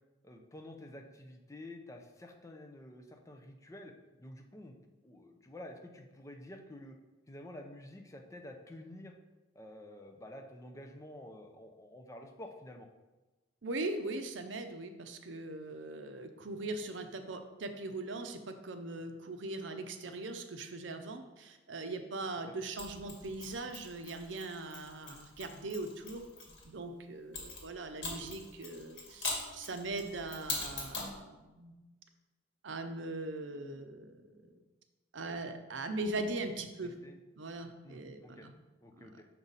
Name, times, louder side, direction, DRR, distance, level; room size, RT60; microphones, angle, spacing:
voice 1, 0.2-3.9 4.2-4.8 5.0-7.0 7.3-9.1 9.5-12.9 36.8-37.2 37.8-38.5 38.8-39.2, left 1 dB, 15° left, 3 dB, 0.5 m, -50 dB
voice 2, 13.6-26.2 26.6-31.7 32.6-34.5 35.1-36.9 37.4-38.5 39.0-39.1, right 2 dB, 75° right, 7 dB, 0.6 m, -40 dB
Mechanisms, 22.8-26.6 27.3-31.2, left 3 dB, 65° left, 2.0 m, -42 dB
6.0 x 5.5 x 4.0 m, 1.1 s
head